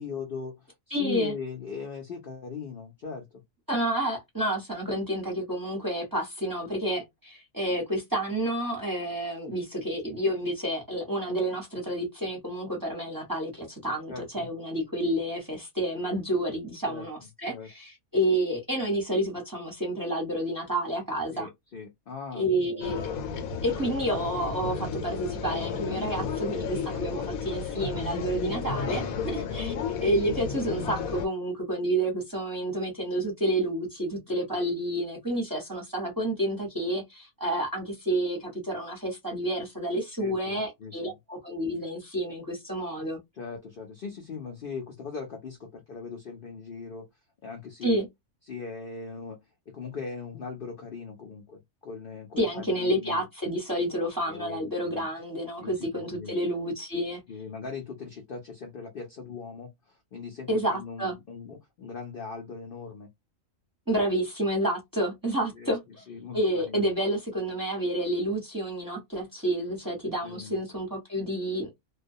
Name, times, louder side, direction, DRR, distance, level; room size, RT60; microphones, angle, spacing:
voice 1, 0.0-3.2 14.1-14.5 16.9-17.1 17.5-17.7 21.3-22.4 22.8-22.9 29.3-29.5 40.2-41.1 43.3-47.1 47.4-48.0 48.5-49.4 49.7-53.2 54.3-55.1 55.6-55.8 56.1-56.3 57.3-59.7 60.1-63.1 65.6-65.7 66.1-66.8 70.2-70.6, left 5 dB, 60° left, 0.6 m, -39 dB
voice 2, 0.9-1.3 3.7-21.5 22.3-23.1 23.6-29.7 30.0-43.2 47.8-48.1 52.4-57.2 60.5-61.1 63.9-66.0 66.3-71.7, right 1 dB, 20° right, 0.7 m, -29 dB
sound 1, 22.8-31.3, left 5 dB, 80° left, 1.0 m, -32 dB
2.3 x 2.2 x 2.6 m
omnidirectional pair, 1.5 m